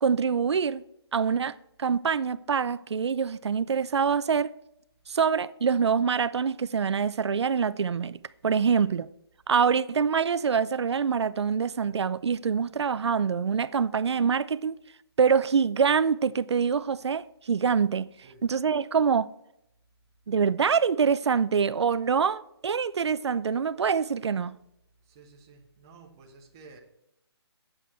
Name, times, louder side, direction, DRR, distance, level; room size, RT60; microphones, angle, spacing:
voice 1, 0.0-0.8 1.1-4.5 5.1-8.2 8.4-9.1 9.5-14.7 15.2-18.1 18.4-19.3 20.3-24.6, right 6 dB, 85° right, 0.5 m, -25 dB
voice 2, 25.0-26.8, right 4 dB, 10° right, 0.4 m, -52 dB
8.3 x 7.6 x 4.4 m
hypercardioid pair, 175°, 14 cm